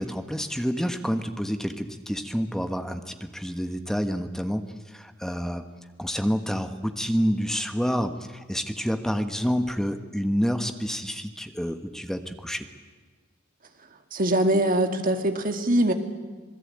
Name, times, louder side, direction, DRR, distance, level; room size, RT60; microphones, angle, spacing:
voice 1, 0.0-4.7 4.9-5.6 6.0-12.7, equal, ahead, 7 dB, 1.3 m, -28 dB
voice 2, 14.1-15.9, right 1 dB, 45° right, 6 dB, 2.1 m, -22 dB
26.5 x 20.0 x 8.7 m, 1.4 s
head